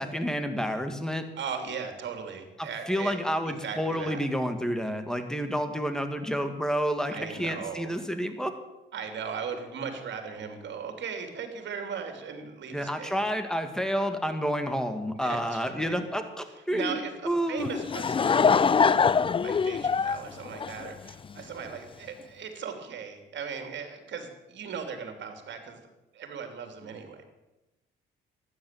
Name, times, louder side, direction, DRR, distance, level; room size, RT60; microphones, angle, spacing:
voice 1, 0.0-1.3 2.6-8.5 12.7-17.0 17.2-17.7, equal, 5° left, 8 dB, 2.1 m, -29 dB
voice 2, 1.4-3.2 3.4-4.2 7.1-7.9 8.9-13.2 15.2-16.0 16.7-19.0 19.4-25.8 26.1-27.2, right 6 dB, 65° right, 6 dB, 3.1 m, -38 dB
Laughter / Crowd, 17.6-21.4, left 6 dB, 25° left, 0.5 m, -23 dB
13.0 x 10.0 x 9.1 m, 1.0 s
cardioid pair, 90°, 20 cm